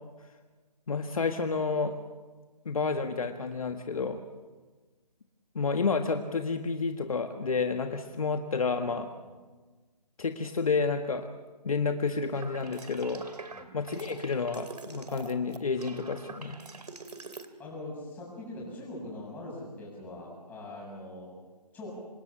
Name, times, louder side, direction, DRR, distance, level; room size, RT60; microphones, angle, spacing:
voice 1, 0.9-2.0 2.6-4.2 5.5-9.1 10.2-11.3 11.6-13.2 13.7-16.6, left 4 dB, 55° left, 6 dB, 1.7 m, -30 dB
sound 1, 12.3-17.5, right 3 dB, 70° right, 2.6 m, -45 dB
voice 2, 17.6-21.3 21.7-21.9, left 1 dB, 10° left, -4 dB, 7.4 m, -42 dB
27.0 x 19.0 x 7.1 m, 1.3 s
figure-of-eight pair, 150°, 21 cm